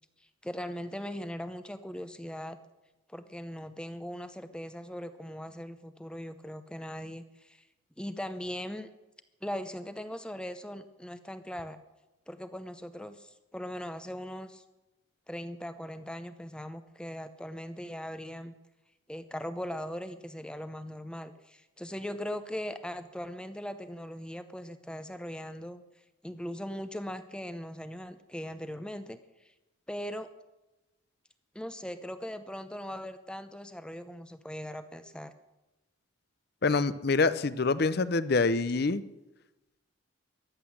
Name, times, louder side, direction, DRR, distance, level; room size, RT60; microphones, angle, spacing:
voice 1, 0.4-2.6 3.1-7.6 8.0-8.9 9.4-11.8 12.3-14.6 15.3-18.5 19.1-25.8 26.2-29.5 29.9-30.3 31.5-35.3, equal, 5° left, 10 dB, 0.6 m, -39 dB
voice 2, 36.6-39.0, left 3 dB, 50° left, 16 dB, 0.6 m, -26 dB
14.5 x 11.0 x 7.2 m, 1.0 s
head